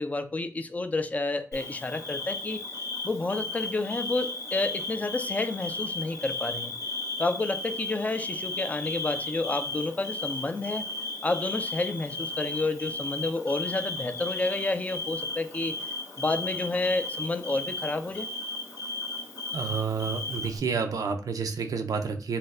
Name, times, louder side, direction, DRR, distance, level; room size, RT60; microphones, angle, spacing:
voice 1, 0.0-2.6 3.0-6.7 7.2-10.9 11.2-15.8 16.2-18.3, left 2 dB, 25° left, 9 dB, 0.3 m, -30 dB
Bird / Cricket, 1.5-20.6, left 2 dB, 75° left, 0.8 m, -35 dB
voice 2, 19.5-22.4, right 5 dB, 90° right, 6 dB, 0.4 m, -29 dB
4.0 x 2.1 x 2.4 m, 0.41 s
wide cardioid pair, 145°, 6 cm